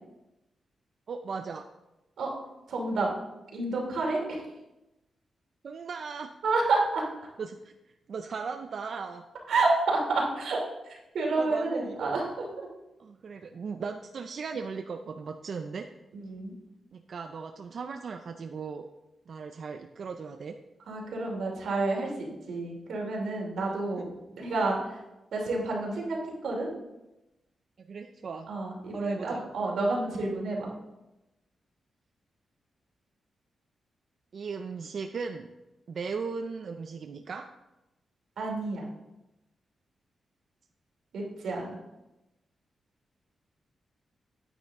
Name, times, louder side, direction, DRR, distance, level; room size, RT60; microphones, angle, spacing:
voice 1, 1.1-1.7 5.6-6.3 7.4-7.7 8.1-9.2 11.4-12.2 13.0-15.9 16.9-18.9 19.3-20.6 24.0-24.1 24.7-24.8 27.8-28.5 28.9-29.5 34.3-35.5 35.9-37.5, right 5 dB, 50° right, 6 dB, 0.4 m, -37 dB
voice 2, 2.7-3.1 3.5-4.4 6.4-7.0 9.5-10.6 10.9-12.7 16.2-16.5 20.9-24.8 25.3-26.7 28.5-30.7 38.4-38.9 41.1-41.8, right 3 dB, 85° right, -1 dB, 2.8 m, -29 dB
9.4 x 9.2 x 3.6 m, 0.98 s
wide cardioid pair, 160°, 0 cm